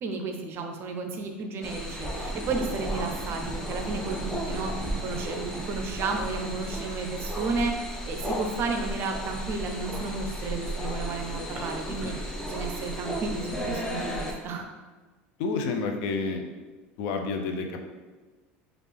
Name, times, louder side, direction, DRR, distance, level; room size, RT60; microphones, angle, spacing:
voice 1, 0.0-14.7, right 4 dB, 45° right, 4 dB, 0.5 m, -33 dB
sound 1, 1.6-14.3, equal, 10° left, 0.6 m, -34 dB
sound 2, 2.1-13.0, right 1 dB, 30° right, 0.9 m, -42 dB
voice 2, 15.4-16.4 17.0-17.8, left 4 dB, 70° left, 5 dB, 0.5 m, -29 dB
3.4 x 2.5 x 3.3 m, 1.2 s
supercardioid pair, 105°, 5 cm